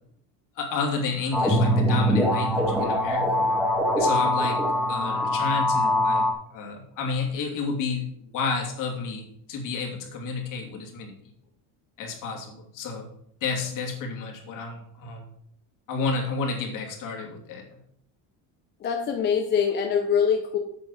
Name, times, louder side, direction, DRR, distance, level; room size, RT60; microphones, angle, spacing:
voice 1, 0.6-3.4 4.0-4.6 4.9-6.2 6.5-11.1 12.0-13.1 13.4-15.3 15.9-17.6, left 4 dB, 50° left, 1 dB, 2.6 m, -31 dB
sound 1, 1.3-6.3, left 1 dB, ahead, 1.7 m, -23 dB
voice 2, 18.8-20.6, left 7 dB, 25° left, 3 dB, 0.8 m, -24 dB
8.6 x 5.9 x 6.6 m, 0.70 s
cardioid pair, 170°, 41 cm